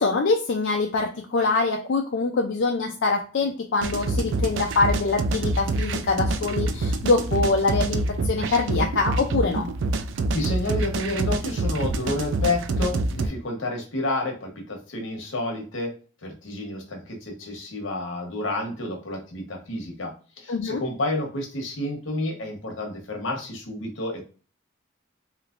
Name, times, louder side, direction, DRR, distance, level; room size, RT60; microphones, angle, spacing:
voice 1, 0.0-9.7 20.5-20.8, left 3 dB, 65° left, 2 dB, 0.4 m, -24 dB
sound 1, 3.8-13.3, right 2 dB, 70° right, 0.4 m, -26 dB
voice 2, 10.3-15.9 16.2-24.3, left 2 dB, 80° left, 2 dB, 1.0 m, -30 dB
3.2 x 2.9 x 2.5 m, 0.36 s
head